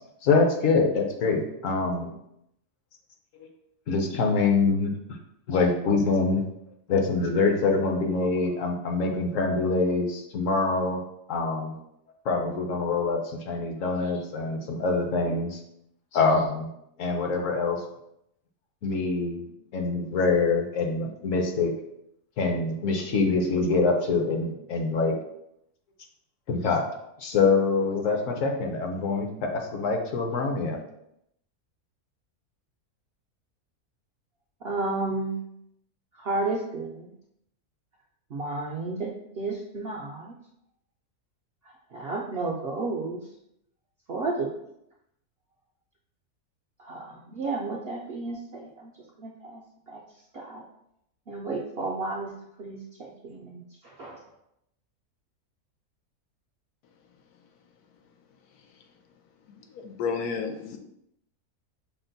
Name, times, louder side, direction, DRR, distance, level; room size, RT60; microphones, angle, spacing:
voice 1, 0.2-2.1 3.9-4.9 5.5-6.4 6.9-11.0 11.3-11.8 12.2-15.6 16.1-16.7 17.0-17.8 18.8-19.4 19.7-21.7 22.4-25.1 26.5-26.9 27.2-30.8, left 4 dB, 65° left, 3 dB, 1.0 m, -25 dB
voice 2, 34.6-35.3 36.2-37.1 38.3-40.3 41.9-43.2 44.1-44.5 46.8-48.9 49.2-49.6 49.9-50.0 50.3-50.6 51.3-52.3 52.6-54.2, right 3 dB, 65° right, -2 dB, 0.6 m, -32 dB
voice 3, 59.5-60.8, left 5 dB, 90° left, 5 dB, 1.1 m, -32 dB
5.8 x 2.1 x 3.9 m, 0.78 s
omnidirectional pair, 1.6 m